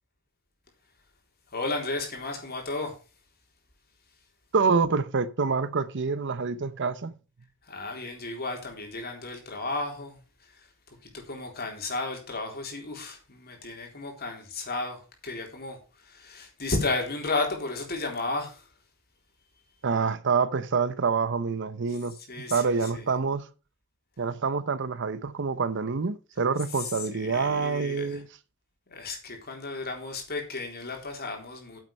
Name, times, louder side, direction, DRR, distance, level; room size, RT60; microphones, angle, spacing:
voice 1, 1.5-3.0 7.6-18.7 22.1-23.2 26.7-28.2 28.9-31.8, left 3 dB, 45° left, 3.8 m, -34 dB
voice 2, 4.5-7.1 19.8-22.1 22.5-23.5 24.2-28.3, right 5 dB, 55° right, 0.7 m, -26 dB
9.5 x 7.9 x 5.4 m
head